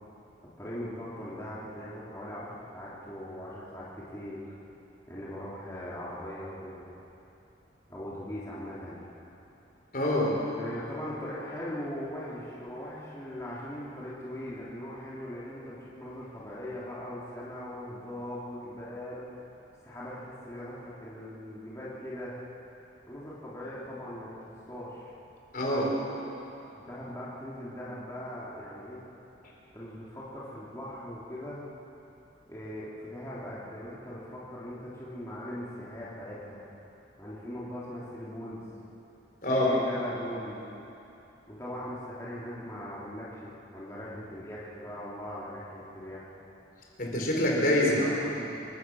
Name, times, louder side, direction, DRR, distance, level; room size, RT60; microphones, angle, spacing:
voice 1, 0.6-4.4 5.1-6.8 7.9-9.0 10.5-19.3 19.8-22.3 23.1-25.1 26.8-29.0 29.7-31.6 32.4-36.6 37.2-38.6 39.5-40.6 41.5-46.2 47.8-48.5, left 1 dB, 15° left, -8 dB, 3.4 m, -40 dB
voice 2, 9.9-10.4 25.5-26.0 39.4-39.7 47.0-48.0, left 1 dB, 50° left, -2 dB, 4.7 m, -25 dB
27.5 x 16.5 x 6.4 m, 2.9 s
head